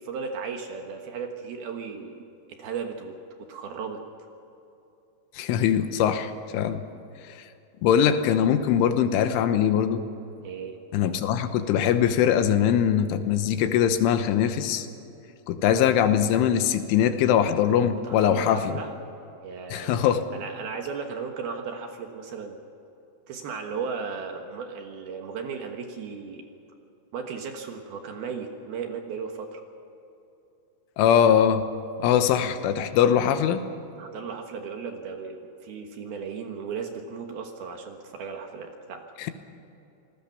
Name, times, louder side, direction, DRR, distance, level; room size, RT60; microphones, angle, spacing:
voice 1, 0.0-2.3 2.6-3.1 3.5-4.0 10.4-10.8 18.0-19.0 19.4-20.1 20.3-22.6 23.3-26.4 27.1-29.6 34.0-39.0, right 5 dB, 65° right, 4 dB, 2.8 m, -35 dB
voice 2, 5.4-6.8 7.8-10.0 10.9-14.9 15.5-18.8 19.7-20.3 31.0-31.6 32.0-33.7 39.2-39.3, left 9 dB, 85° left, 9 dB, 3.6 m, -22 dB
27.5 x 19.5 x 5.9 m, 2.9 s
omnidirectional pair, 5.6 m